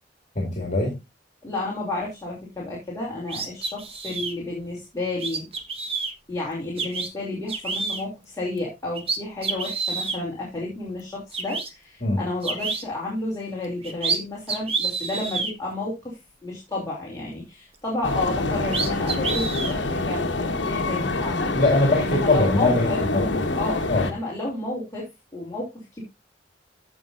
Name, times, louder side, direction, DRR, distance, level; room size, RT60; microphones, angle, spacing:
voice 1, 0.4-1.0 12.0-12.2 21.5-23.3 23.9-24.0, left 2 dB, 40° left, 0 dB, 2.4 m, -22 dB
voice 2, 1.4-5.5 6.3-21.5 22.0-23.0 23.5-26.0, left 2 dB, 20° left, -5 dB, 2.9 m, -31 dB
sound 1, 3.3-4.3 5.2-6.1 6.8-7.1 7.5-8.0 8.6-8.7 8.9-10.2 11.0-11.1 11.3-11.7 12.4-12.8 13.6-14.2 14.5-15.5 18.2-18.3 18.7-19.8, right 4 dB, 35° right, 1.3 m, -28 dB
sound 2, 18.0-24.1, left 2 dB, 70° left, 1.3 m, -26 dB
14.5 x 5.5 x 2.6 m, 0.22 s
head